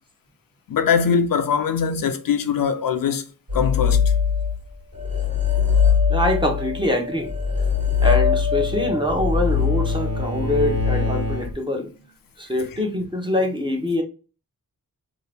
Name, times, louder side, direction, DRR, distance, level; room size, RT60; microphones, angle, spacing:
voice 1, 0.7-3.2 3.5-4.1, left 6 dB, 70° left, 0.5 m, -21 dB
sound 1, 3.5-4.7 4.9-11.5, left 7 dB, 70° right, 1.6 m, -22 dB
voice 2, 6.1-7.3 8.0-11.9 12.4-14.0, left 1 dB, 15° right, 0.9 m, -24 dB
Bowed string instrument, 7.9-11.8, right 2 dB, 45° right, 1.1 m, -30 dB
2.8 x 2.5 x 3.3 m
wide cardioid pair, 105°, 35 cm